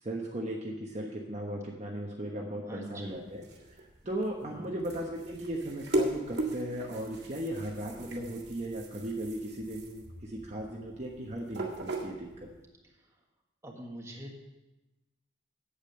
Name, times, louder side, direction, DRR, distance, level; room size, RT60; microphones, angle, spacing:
voice 1, 0.0-3.5 3.7-12.3, right 1 dB, 35° right, -1 dB, 1.1 m, -37 dB
voice 2, 2.7-3.2 4.4-4.8 13.6-14.4, equal, 15° right, -1 dB, 1.6 m, -43 dB
sound 1, 3.0-12.6, right 1 dB, 55° right, 1.8 m, -38 dB
8.8 x 8.3 x 6.8 m, 1.0 s
head